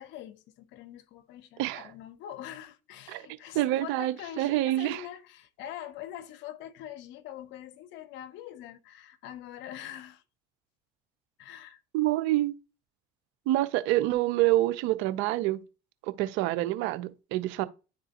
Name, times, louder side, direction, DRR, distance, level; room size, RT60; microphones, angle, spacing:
voice 1, 0.0-10.2 11.4-11.8, left 11 dB, 70° left, 0.8 m, -44 dB
voice 2, 3.5-5.0 11.9-12.6 13.5-15.6 16.2-17.7, right 16 dB, 75° right, 0.7 m, -27 dB
10.0 x 3.7 x 2.9 m
hypercardioid pair, 70°, 20 cm